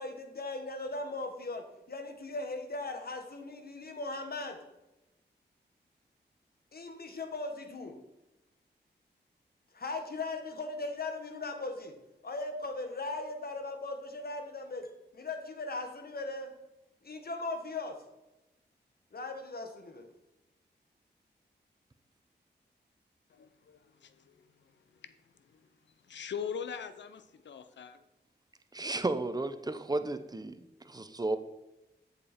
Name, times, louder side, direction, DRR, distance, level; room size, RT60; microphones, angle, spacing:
voice 1, 0.0-4.6 6.7-8.0 9.7-12.0 12.2-14.9 15.1-16.5 17.0-18.0 19.1-20.1, left 2 dB, 55° left, 5 dB, 1.6 m, -38 dB
voice 2, 23.3-24.4 25.0-25.1 25.5-25.6 26.1-28.0, left 7 dB, 80° left, 11 dB, 0.7 m, -41 dB
voice 3, 28.7-30.5 30.9-31.4, right 2 dB, 20° right, 10 dB, 0.8 m, -33 dB
8.2 x 6.9 x 4.4 m, 0.98 s
cardioid pair, 55°, 18 cm